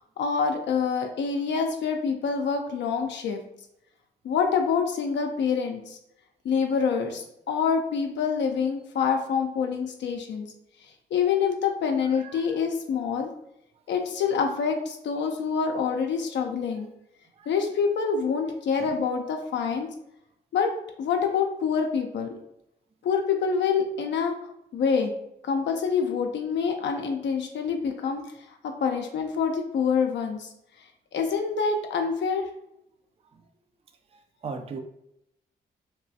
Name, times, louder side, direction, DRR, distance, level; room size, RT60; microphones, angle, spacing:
voice 1, 0.2-3.4 4.2-6.0 6.4-10.5 11.1-13.3 13.9-16.9 17.5-19.9 20.5-20.7 21.0-22.3 23.0-24.4 24.7-25.1 25.4-28.2 28.6-30.5 31.1-32.5, left 6 dB, 65° left, 3 dB, 0.4 m, -26 dB
voice 2, 12.1-12.5 15.2-15.3 17.4-17.5 18.8-19.0 34.1-34.8, right 4 dB, 30° right, 6 dB, 0.4 m, -39 dB
2.9 x 2.3 x 2.6 m, 0.81 s
supercardioid pair, 50°, 20 cm